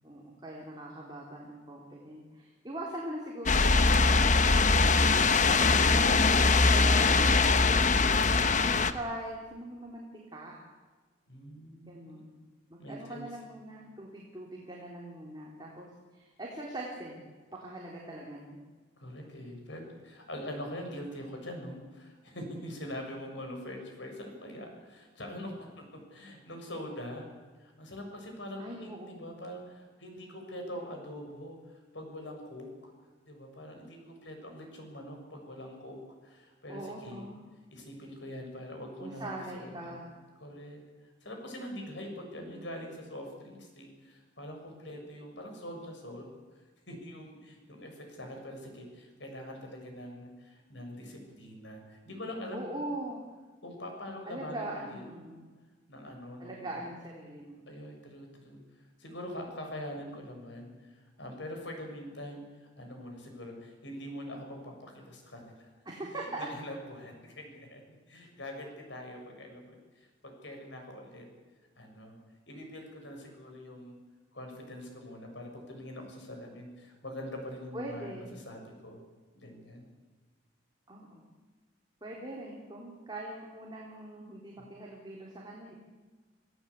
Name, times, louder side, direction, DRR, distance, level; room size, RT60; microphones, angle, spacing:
voice 1, 0.0-4.5 5.1-7.9 8.6-10.0 10.3-10.6 11.9-12.3 12.7-17.2 17.5-18.6 28.6-29.1 36.7-37.5 39.0-40.1 52.5-53.2 54.3-55.5 56.4-57.7 65.9-66.5 77.7-78.4 80.9-81.2 82.0-85.7, right 1 dB, 25° right, -3 dB, 3.8 m, -41 dB
sound 1, 3.5-8.9, left 4 dB, 40° left, 1.0 m, -22 dB
voice 2, 11.3-12.2 12.8-13.3 19.0-27.3 27.6-32.9 33.2-37.2 37.7-40.0 40.4-40.8 41.2-46.3 46.9-52.8 53.6-55.1 55.9-56.7 57.7-65.7 66.1-67.8 68.1-71.3 71.8-72.2 72.5-74.0 74.3-79.0 79.3-79.9, left 1 dB, 75° left, 3 dB, 6.8 m, -44 dB
27.0 x 17.0 x 8.5 m, 1.3 s
head